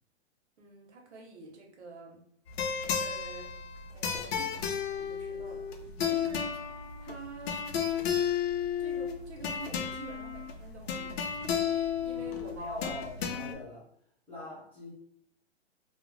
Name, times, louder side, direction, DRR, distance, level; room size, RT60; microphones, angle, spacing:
voice 1, 0.6-2.2 2.8-3.6 3.9-6.6 7.0-7.6 8.8-13.0, right 3 dB, 85° right, 0 dB, 0.9 m, -48 dB
sound 1, 2.5-13.5, left 7 dB, 65° left, 0.5 m, -33 dB
voice 2, 12.5-13.9 14.3-14.9, left 2 dB, 5° left, -10 dB, 0.7 m, -41 dB
2.4 x 2.0 x 3.2 m, 0.67 s
hypercardioid pair, 160°, 33 cm